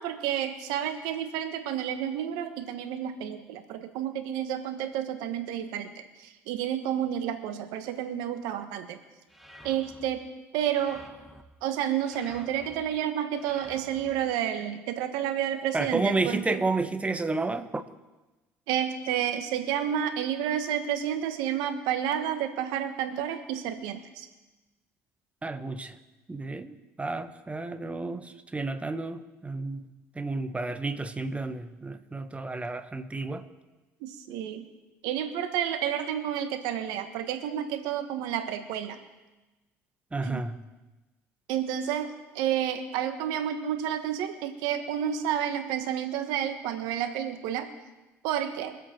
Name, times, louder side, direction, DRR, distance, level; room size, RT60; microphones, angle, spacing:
voice 1, 0.0-9.0 9.6-10.3 10.5-11.0 11.6-16.6 18.7-24.3 34.0-34.6 35.0-39.0 40.2-40.4 41.5-47.7 48.2-48.8, right 10 dB, 75° right, 8 dB, 1.5 m, -30 dB
sound 1, 9.3-10.1 10.6-11.4 12.0-12.8 13.3-14.1, equal, ahead, 1.9 m, -50 dB
voice 2, 15.7-17.8 25.4-25.9 26.3-29.9 30.1-33.4 40.1-40.6, right 3 dB, 20° right, 9 dB, 1.4 m, -31 dB
23.5 x 8.0 x 4.5 m, 1.1 s
hypercardioid pair, 65°, 7 cm